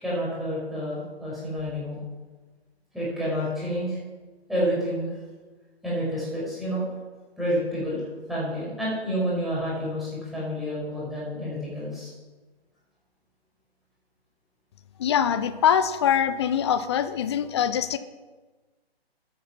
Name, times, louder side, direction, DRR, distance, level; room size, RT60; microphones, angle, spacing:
voice 1, 0.0-2.0 2.9-4.0 4.5-5.1 5.8-6.8 7.4-8.0 8.3-12.1, equal, ahead, -7 dB, 5.3 m, -29 dB
voice 2, 15.0-18.0, left 9 dB, 25° left, 13 dB, 0.6 m, -23 dB
13.0 x 11.0 x 5.9 m, 1.3 s
figure-of-eight pair, 135°, 32 cm